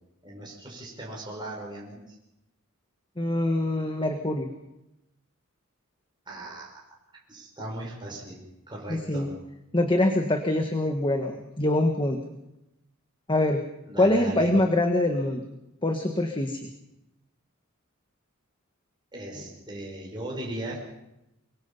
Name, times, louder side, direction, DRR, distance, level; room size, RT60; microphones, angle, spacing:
voice 1, 0.2-2.2 6.3-6.8 7.3-8.4 8.7-9.3 13.9-14.6 19.1-20.8, right 1 dB, 20° right, -2 dB, 5.7 m, -38 dB
voice 2, 3.2-4.5 8.9-9.3 9.7-12.2 13.3-13.6 14.0-15.4 15.8-16.6, left 1 dB, 25° left, 5 dB, 1.5 m, -24 dB
24.5 x 22.5 x 5.5 m, 0.89 s
head